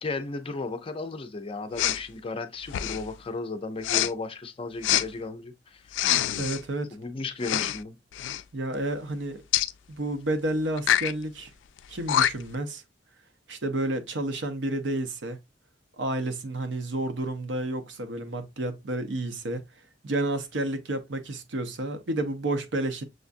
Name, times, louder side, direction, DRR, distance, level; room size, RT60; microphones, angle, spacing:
voice 1, 0.0-5.8 6.9-8.0, left 3 dB, 30° left, 0.5 m, -35 dB
Respiratory sounds, 1.8-2.0 2.7-3.1 3.8-4.1 4.8-5.1 5.9-6.6 7.4-7.8 8.1-8.4 9.5-9.7 10.8-11.1 11.8-11.9 12.1-12.6, left 11 dB, 85° left, 0.3 m, -25 dB
voice 2, 6.4-6.9 8.5-9.4 9.9-11.5 11.9-12.8 13.5-15.4 16.0-19.6 20.0-23.0, right 1 dB, 75° right, 0.7 m, -30 dB
6.3 x 2.4 x 2.5 m
head